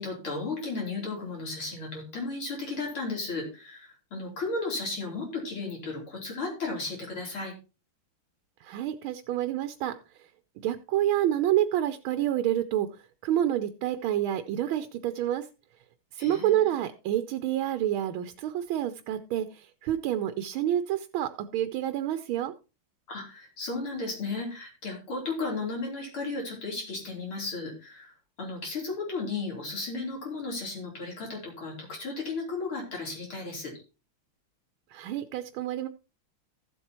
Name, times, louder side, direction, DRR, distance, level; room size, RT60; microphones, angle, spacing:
voice 1, 0.0-7.5 16.2-16.7 23.1-33.7, left 3 dB, 85° left, -1 dB, 4.4 m, -34 dB
voice 2, 8.6-9.9 10.6-12.9 13.2-15.5 16.1-22.5 34.9-35.9, right 12 dB, 80° right, 10 dB, 1.5 m, -28 dB
14.5 x 7.9 x 3.0 m, 0.31 s
omnidirectional pair, 2.3 m